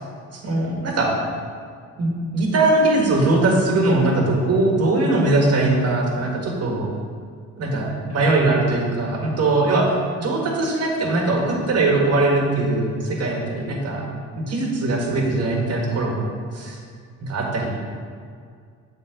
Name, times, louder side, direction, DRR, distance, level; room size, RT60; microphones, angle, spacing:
voice 1, 0.3-1.1 2.0-6.9 7.6-9.9 10.2-14.0 14.3-16.3 16.5-16.8 17.2-17.9, right 2 dB, 55° right, 0 dB, 1.7 m, -21 dB
7.7 x 3.8 x 6.6 m, 2.1 s
cardioid pair, 90°, 30 cm